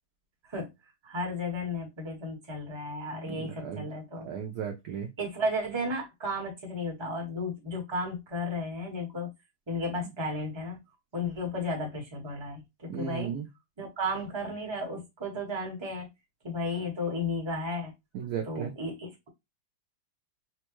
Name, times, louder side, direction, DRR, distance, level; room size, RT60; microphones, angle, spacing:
voice 1, 1.0-4.3 5.2-9.3 9.7-10.8 11.1-13.3 13.8-16.1 16.4-17.9 18.4-19.3, left 1 dB, 15° right, 1.0 m, -34 dB
voice 2, 3.3-3.8 4.2-5.1 12.9-13.5 18.1-18.7, right 8 dB, 65° right, 1.0 m, -35 dB
4.4 x 2.3 x 3.0 m
omnidirectional pair, 2.2 m